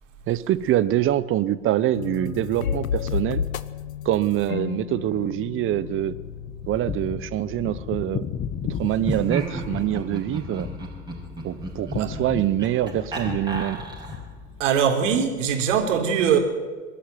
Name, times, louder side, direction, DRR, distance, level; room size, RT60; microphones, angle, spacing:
voice 1, 0.3-3.4 4.0-6.1 6.7-8.3 8.6-10.7 11.4-13.8, right 13 dB, 30° right, 17 dB, 1.0 m, -25 dB
sound 1, 1.9-8.7, left 8 dB, 85° left, 1.0 m, -32 dB
sound 2, 5.7-14.6, left 8 dB, 30° left, 1.8 m, -35 dB
Laughter, 8.9-14.4, right 2 dB, 10° right, 5.4 m, -34 dB
voice 2, 14.6-16.4, right 7 dB, 65° right, 4 dB, 3.9 m, -21 dB
22.5 x 13.0 x 9.3 m, 1.4 s
hypercardioid pair, 100°, 40 cm